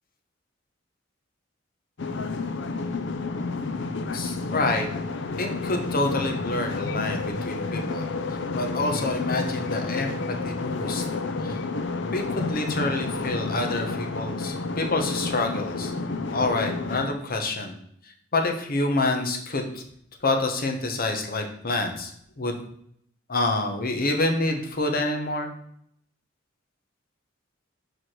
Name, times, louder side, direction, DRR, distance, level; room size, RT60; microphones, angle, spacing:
sound 1, 2.0-17.1, left 3 dB, 65° left, 0.6 m, -30 dB
voice 1, 4.1-4.9 5.4-8.1 8.5-11.0 11.4-11.6 12.1-15.9 16.3-17.7 18.3-19.8 20.2-22.1 22.4-22.5 23.3-25.5, left 2 dB, 50° left, 4 dB, 1.1 m, -27 dB
4.8 x 4.8 x 6.0 m, 0.68 s
head